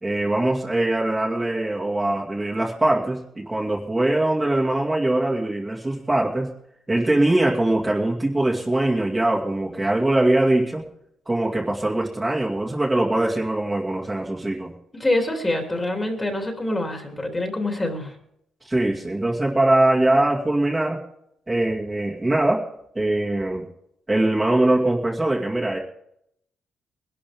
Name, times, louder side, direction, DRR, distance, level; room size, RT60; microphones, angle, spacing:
voice 1, 0.0-6.5 6.9-10.8 11.3-14.7 18.6-21.0 21.5-22.6 22.9-23.7 24.1-25.8, right 1 dB, 15° right, -2 dB, 2.3 m, -22 dB
voice 2, 14.9-18.2, left 1 dB, 15° left, 3 dB, 3.2 m, -25 dB
20.5 x 12.0 x 3.7 m, 0.73 s
cardioid pair, 90°, 0 cm